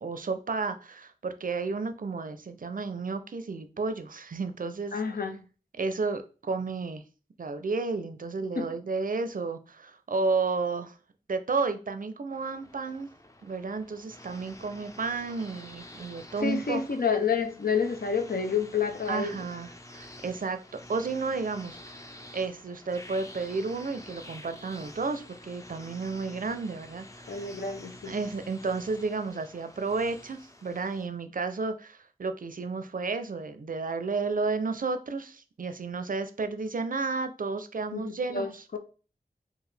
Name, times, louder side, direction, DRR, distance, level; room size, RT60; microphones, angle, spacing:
voice 1, 0.0-5.0 5.8-7.0 7.4-11.0 11.3-13.1 13.4-16.8 19.1-20.6 20.9-22.1 22.3-27.5 28.0-38.8, right 4 dB, 60° right, 0.5 m, -32 dB
voice 2, 4.9-5.4 8.6-8.7 16.4-19.4 27.3-28.2 37.9-38.8, left 6 dB, 65° left, 0.6 m, -29 dB
sound 1, 12.3-31.1, left 1 dB, 20° left, 0.5 m, -49 dB
4.7 x 2.5 x 3.2 m
wide cardioid pair, 60°, 16 cm